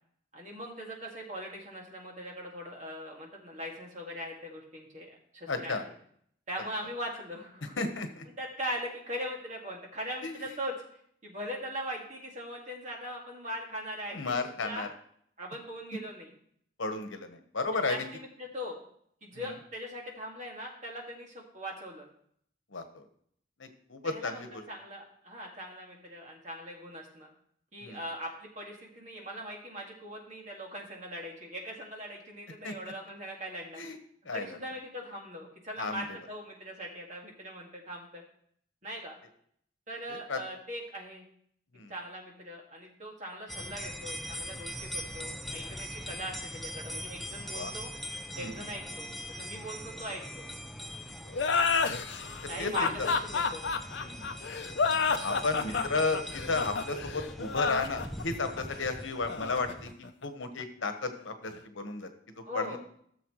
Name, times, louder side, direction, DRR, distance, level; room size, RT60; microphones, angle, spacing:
voice 1, 0.3-5.8 6.5-7.8 8.4-10.7 11.2-14.8 15.4-16.3 17.7-18.8 19.2-22.1 24.0-27.3 27.7-33.8 34.3-38.2 38.8-39.2 39.9-41.2 41.9-47.9 48.4-49.1 49.4-50.5 52.5-53.7 55.7-55.9 62.4-62.8, equal, 40° right, 0 dB, 2.0 m, -40 dB
voice 2, 5.5-5.8 7.8-8.2 10.2-10.5 14.1-14.9 16.8-18.0 19.3-19.5 22.7-23.1 23.6-24.6 27.8-28.0 32.6-32.7 33.7-34.0 34.3-34.5 35.8-36.0 40.1-40.4 41.7-41.9 47.4-47.7 48.4-48.7 51.2-51.3 52.6-53.1 54.0-54.3 55.2-56.2 56.5-59.9 60.2-62.1 62.5-62.8, left 3 dB, 85° left, 7 dB, 1.2 m, -33 dB
sound 1, 43.5-60.0, equal, ahead, 0.4 m, -42 dB
sound 2, 51.3-60.6, left 5 dB, 65° left, 0.6 m, -30 dB
14.5 x 6.9 x 3.1 m, 0.65 s
head